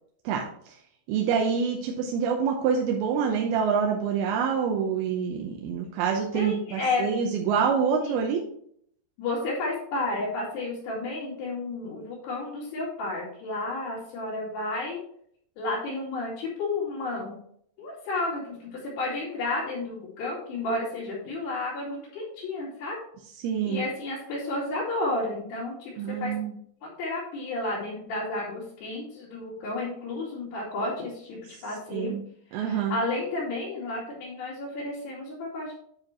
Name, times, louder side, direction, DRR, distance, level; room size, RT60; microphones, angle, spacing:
voice 1, 0.3-0.7 1.1-8.4 23.4-23.8 26.0-26.5 31.9-32.2 32.5-33.0, right 6 dB, 80° right, 0 dB, 2.6 m, -26 dB
voice 2, 6.3-7.1 8.0-8.2 9.2-15.0 15.6-17.4 17.8-23.0 23.7-26.3 26.8-32.1 32.5-35.7, left 2 dB, 75° left, -9 dB, 4.8 m, -32 dB
9.9 x 4.5 x 4.5 m, 0.67 s
omnidirectional pair, 4.8 m